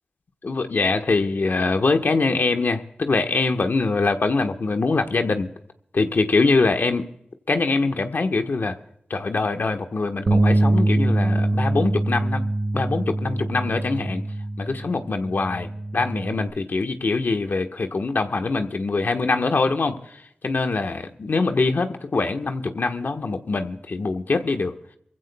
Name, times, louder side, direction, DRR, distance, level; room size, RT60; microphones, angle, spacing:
voice 1, 0.4-5.5 5.9-7.1 7.5-8.8 9.1-12.4 12.7-14.2 14.6-24.7, left 3 dB, 65° left, 6 dB, 1.3 m, -23 dB
Bass guitar, 10.3-16.5, right 1 dB, 55° right, 1.1 m, -23 dB
24.5 x 15.5 x 2.3 m, 0.74 s
cardioid pair, 40°, 3 cm